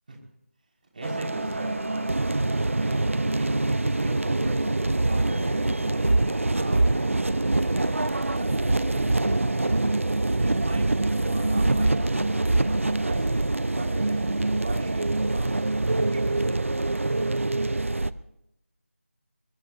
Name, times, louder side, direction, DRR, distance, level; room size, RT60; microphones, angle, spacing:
voice 1, 0.9-2.1 2.8-6.1 6.5-9.3 10.4-16.7, right 2 dB, 40° right, 0 dB, 5.4 m, -38 dB
sound 1, 1.0-18.1, right 2 dB, 70° right, 0.8 m, -24 dB
24.0 x 22.5 x 2.7 m, 0.81 s
figure-of-eight pair, 165°, 7 cm